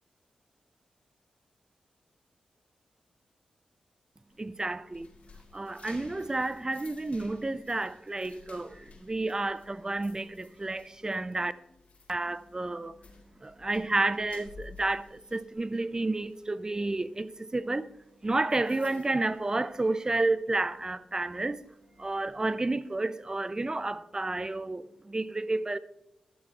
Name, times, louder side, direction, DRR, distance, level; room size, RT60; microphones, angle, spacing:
sound 1, 4.3-20.2 20.5-20.8 21.3-23.0, left 4 dB, 60° left, 2.3 m, -56 dB
voice 1, 4.4-5.1 5.5-11.5 12.1-13.0 13.4-17.9 18.2-21.6 22.0-25.8, right 2 dB, 25° right, 0.5 m, -31 dB
11.5 x 6.9 x 4.6 m
supercardioid pair, 40°, 3 cm